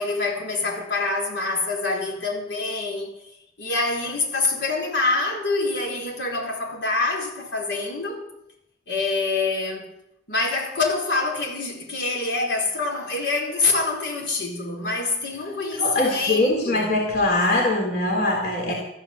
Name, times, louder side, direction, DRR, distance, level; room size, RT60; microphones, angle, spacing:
voice 1, 0.0-3.1 3.6-8.3 8.9-9.9 10.3-16.9 18.7-18.8, left 3 dB, 80° left, 4.5 m, -26 dB
voice 2, 15.8-18.7, left 2 dB, 55° left, 3.4 m, -22 dB
14.0 x 11.5 x 7.3 m
head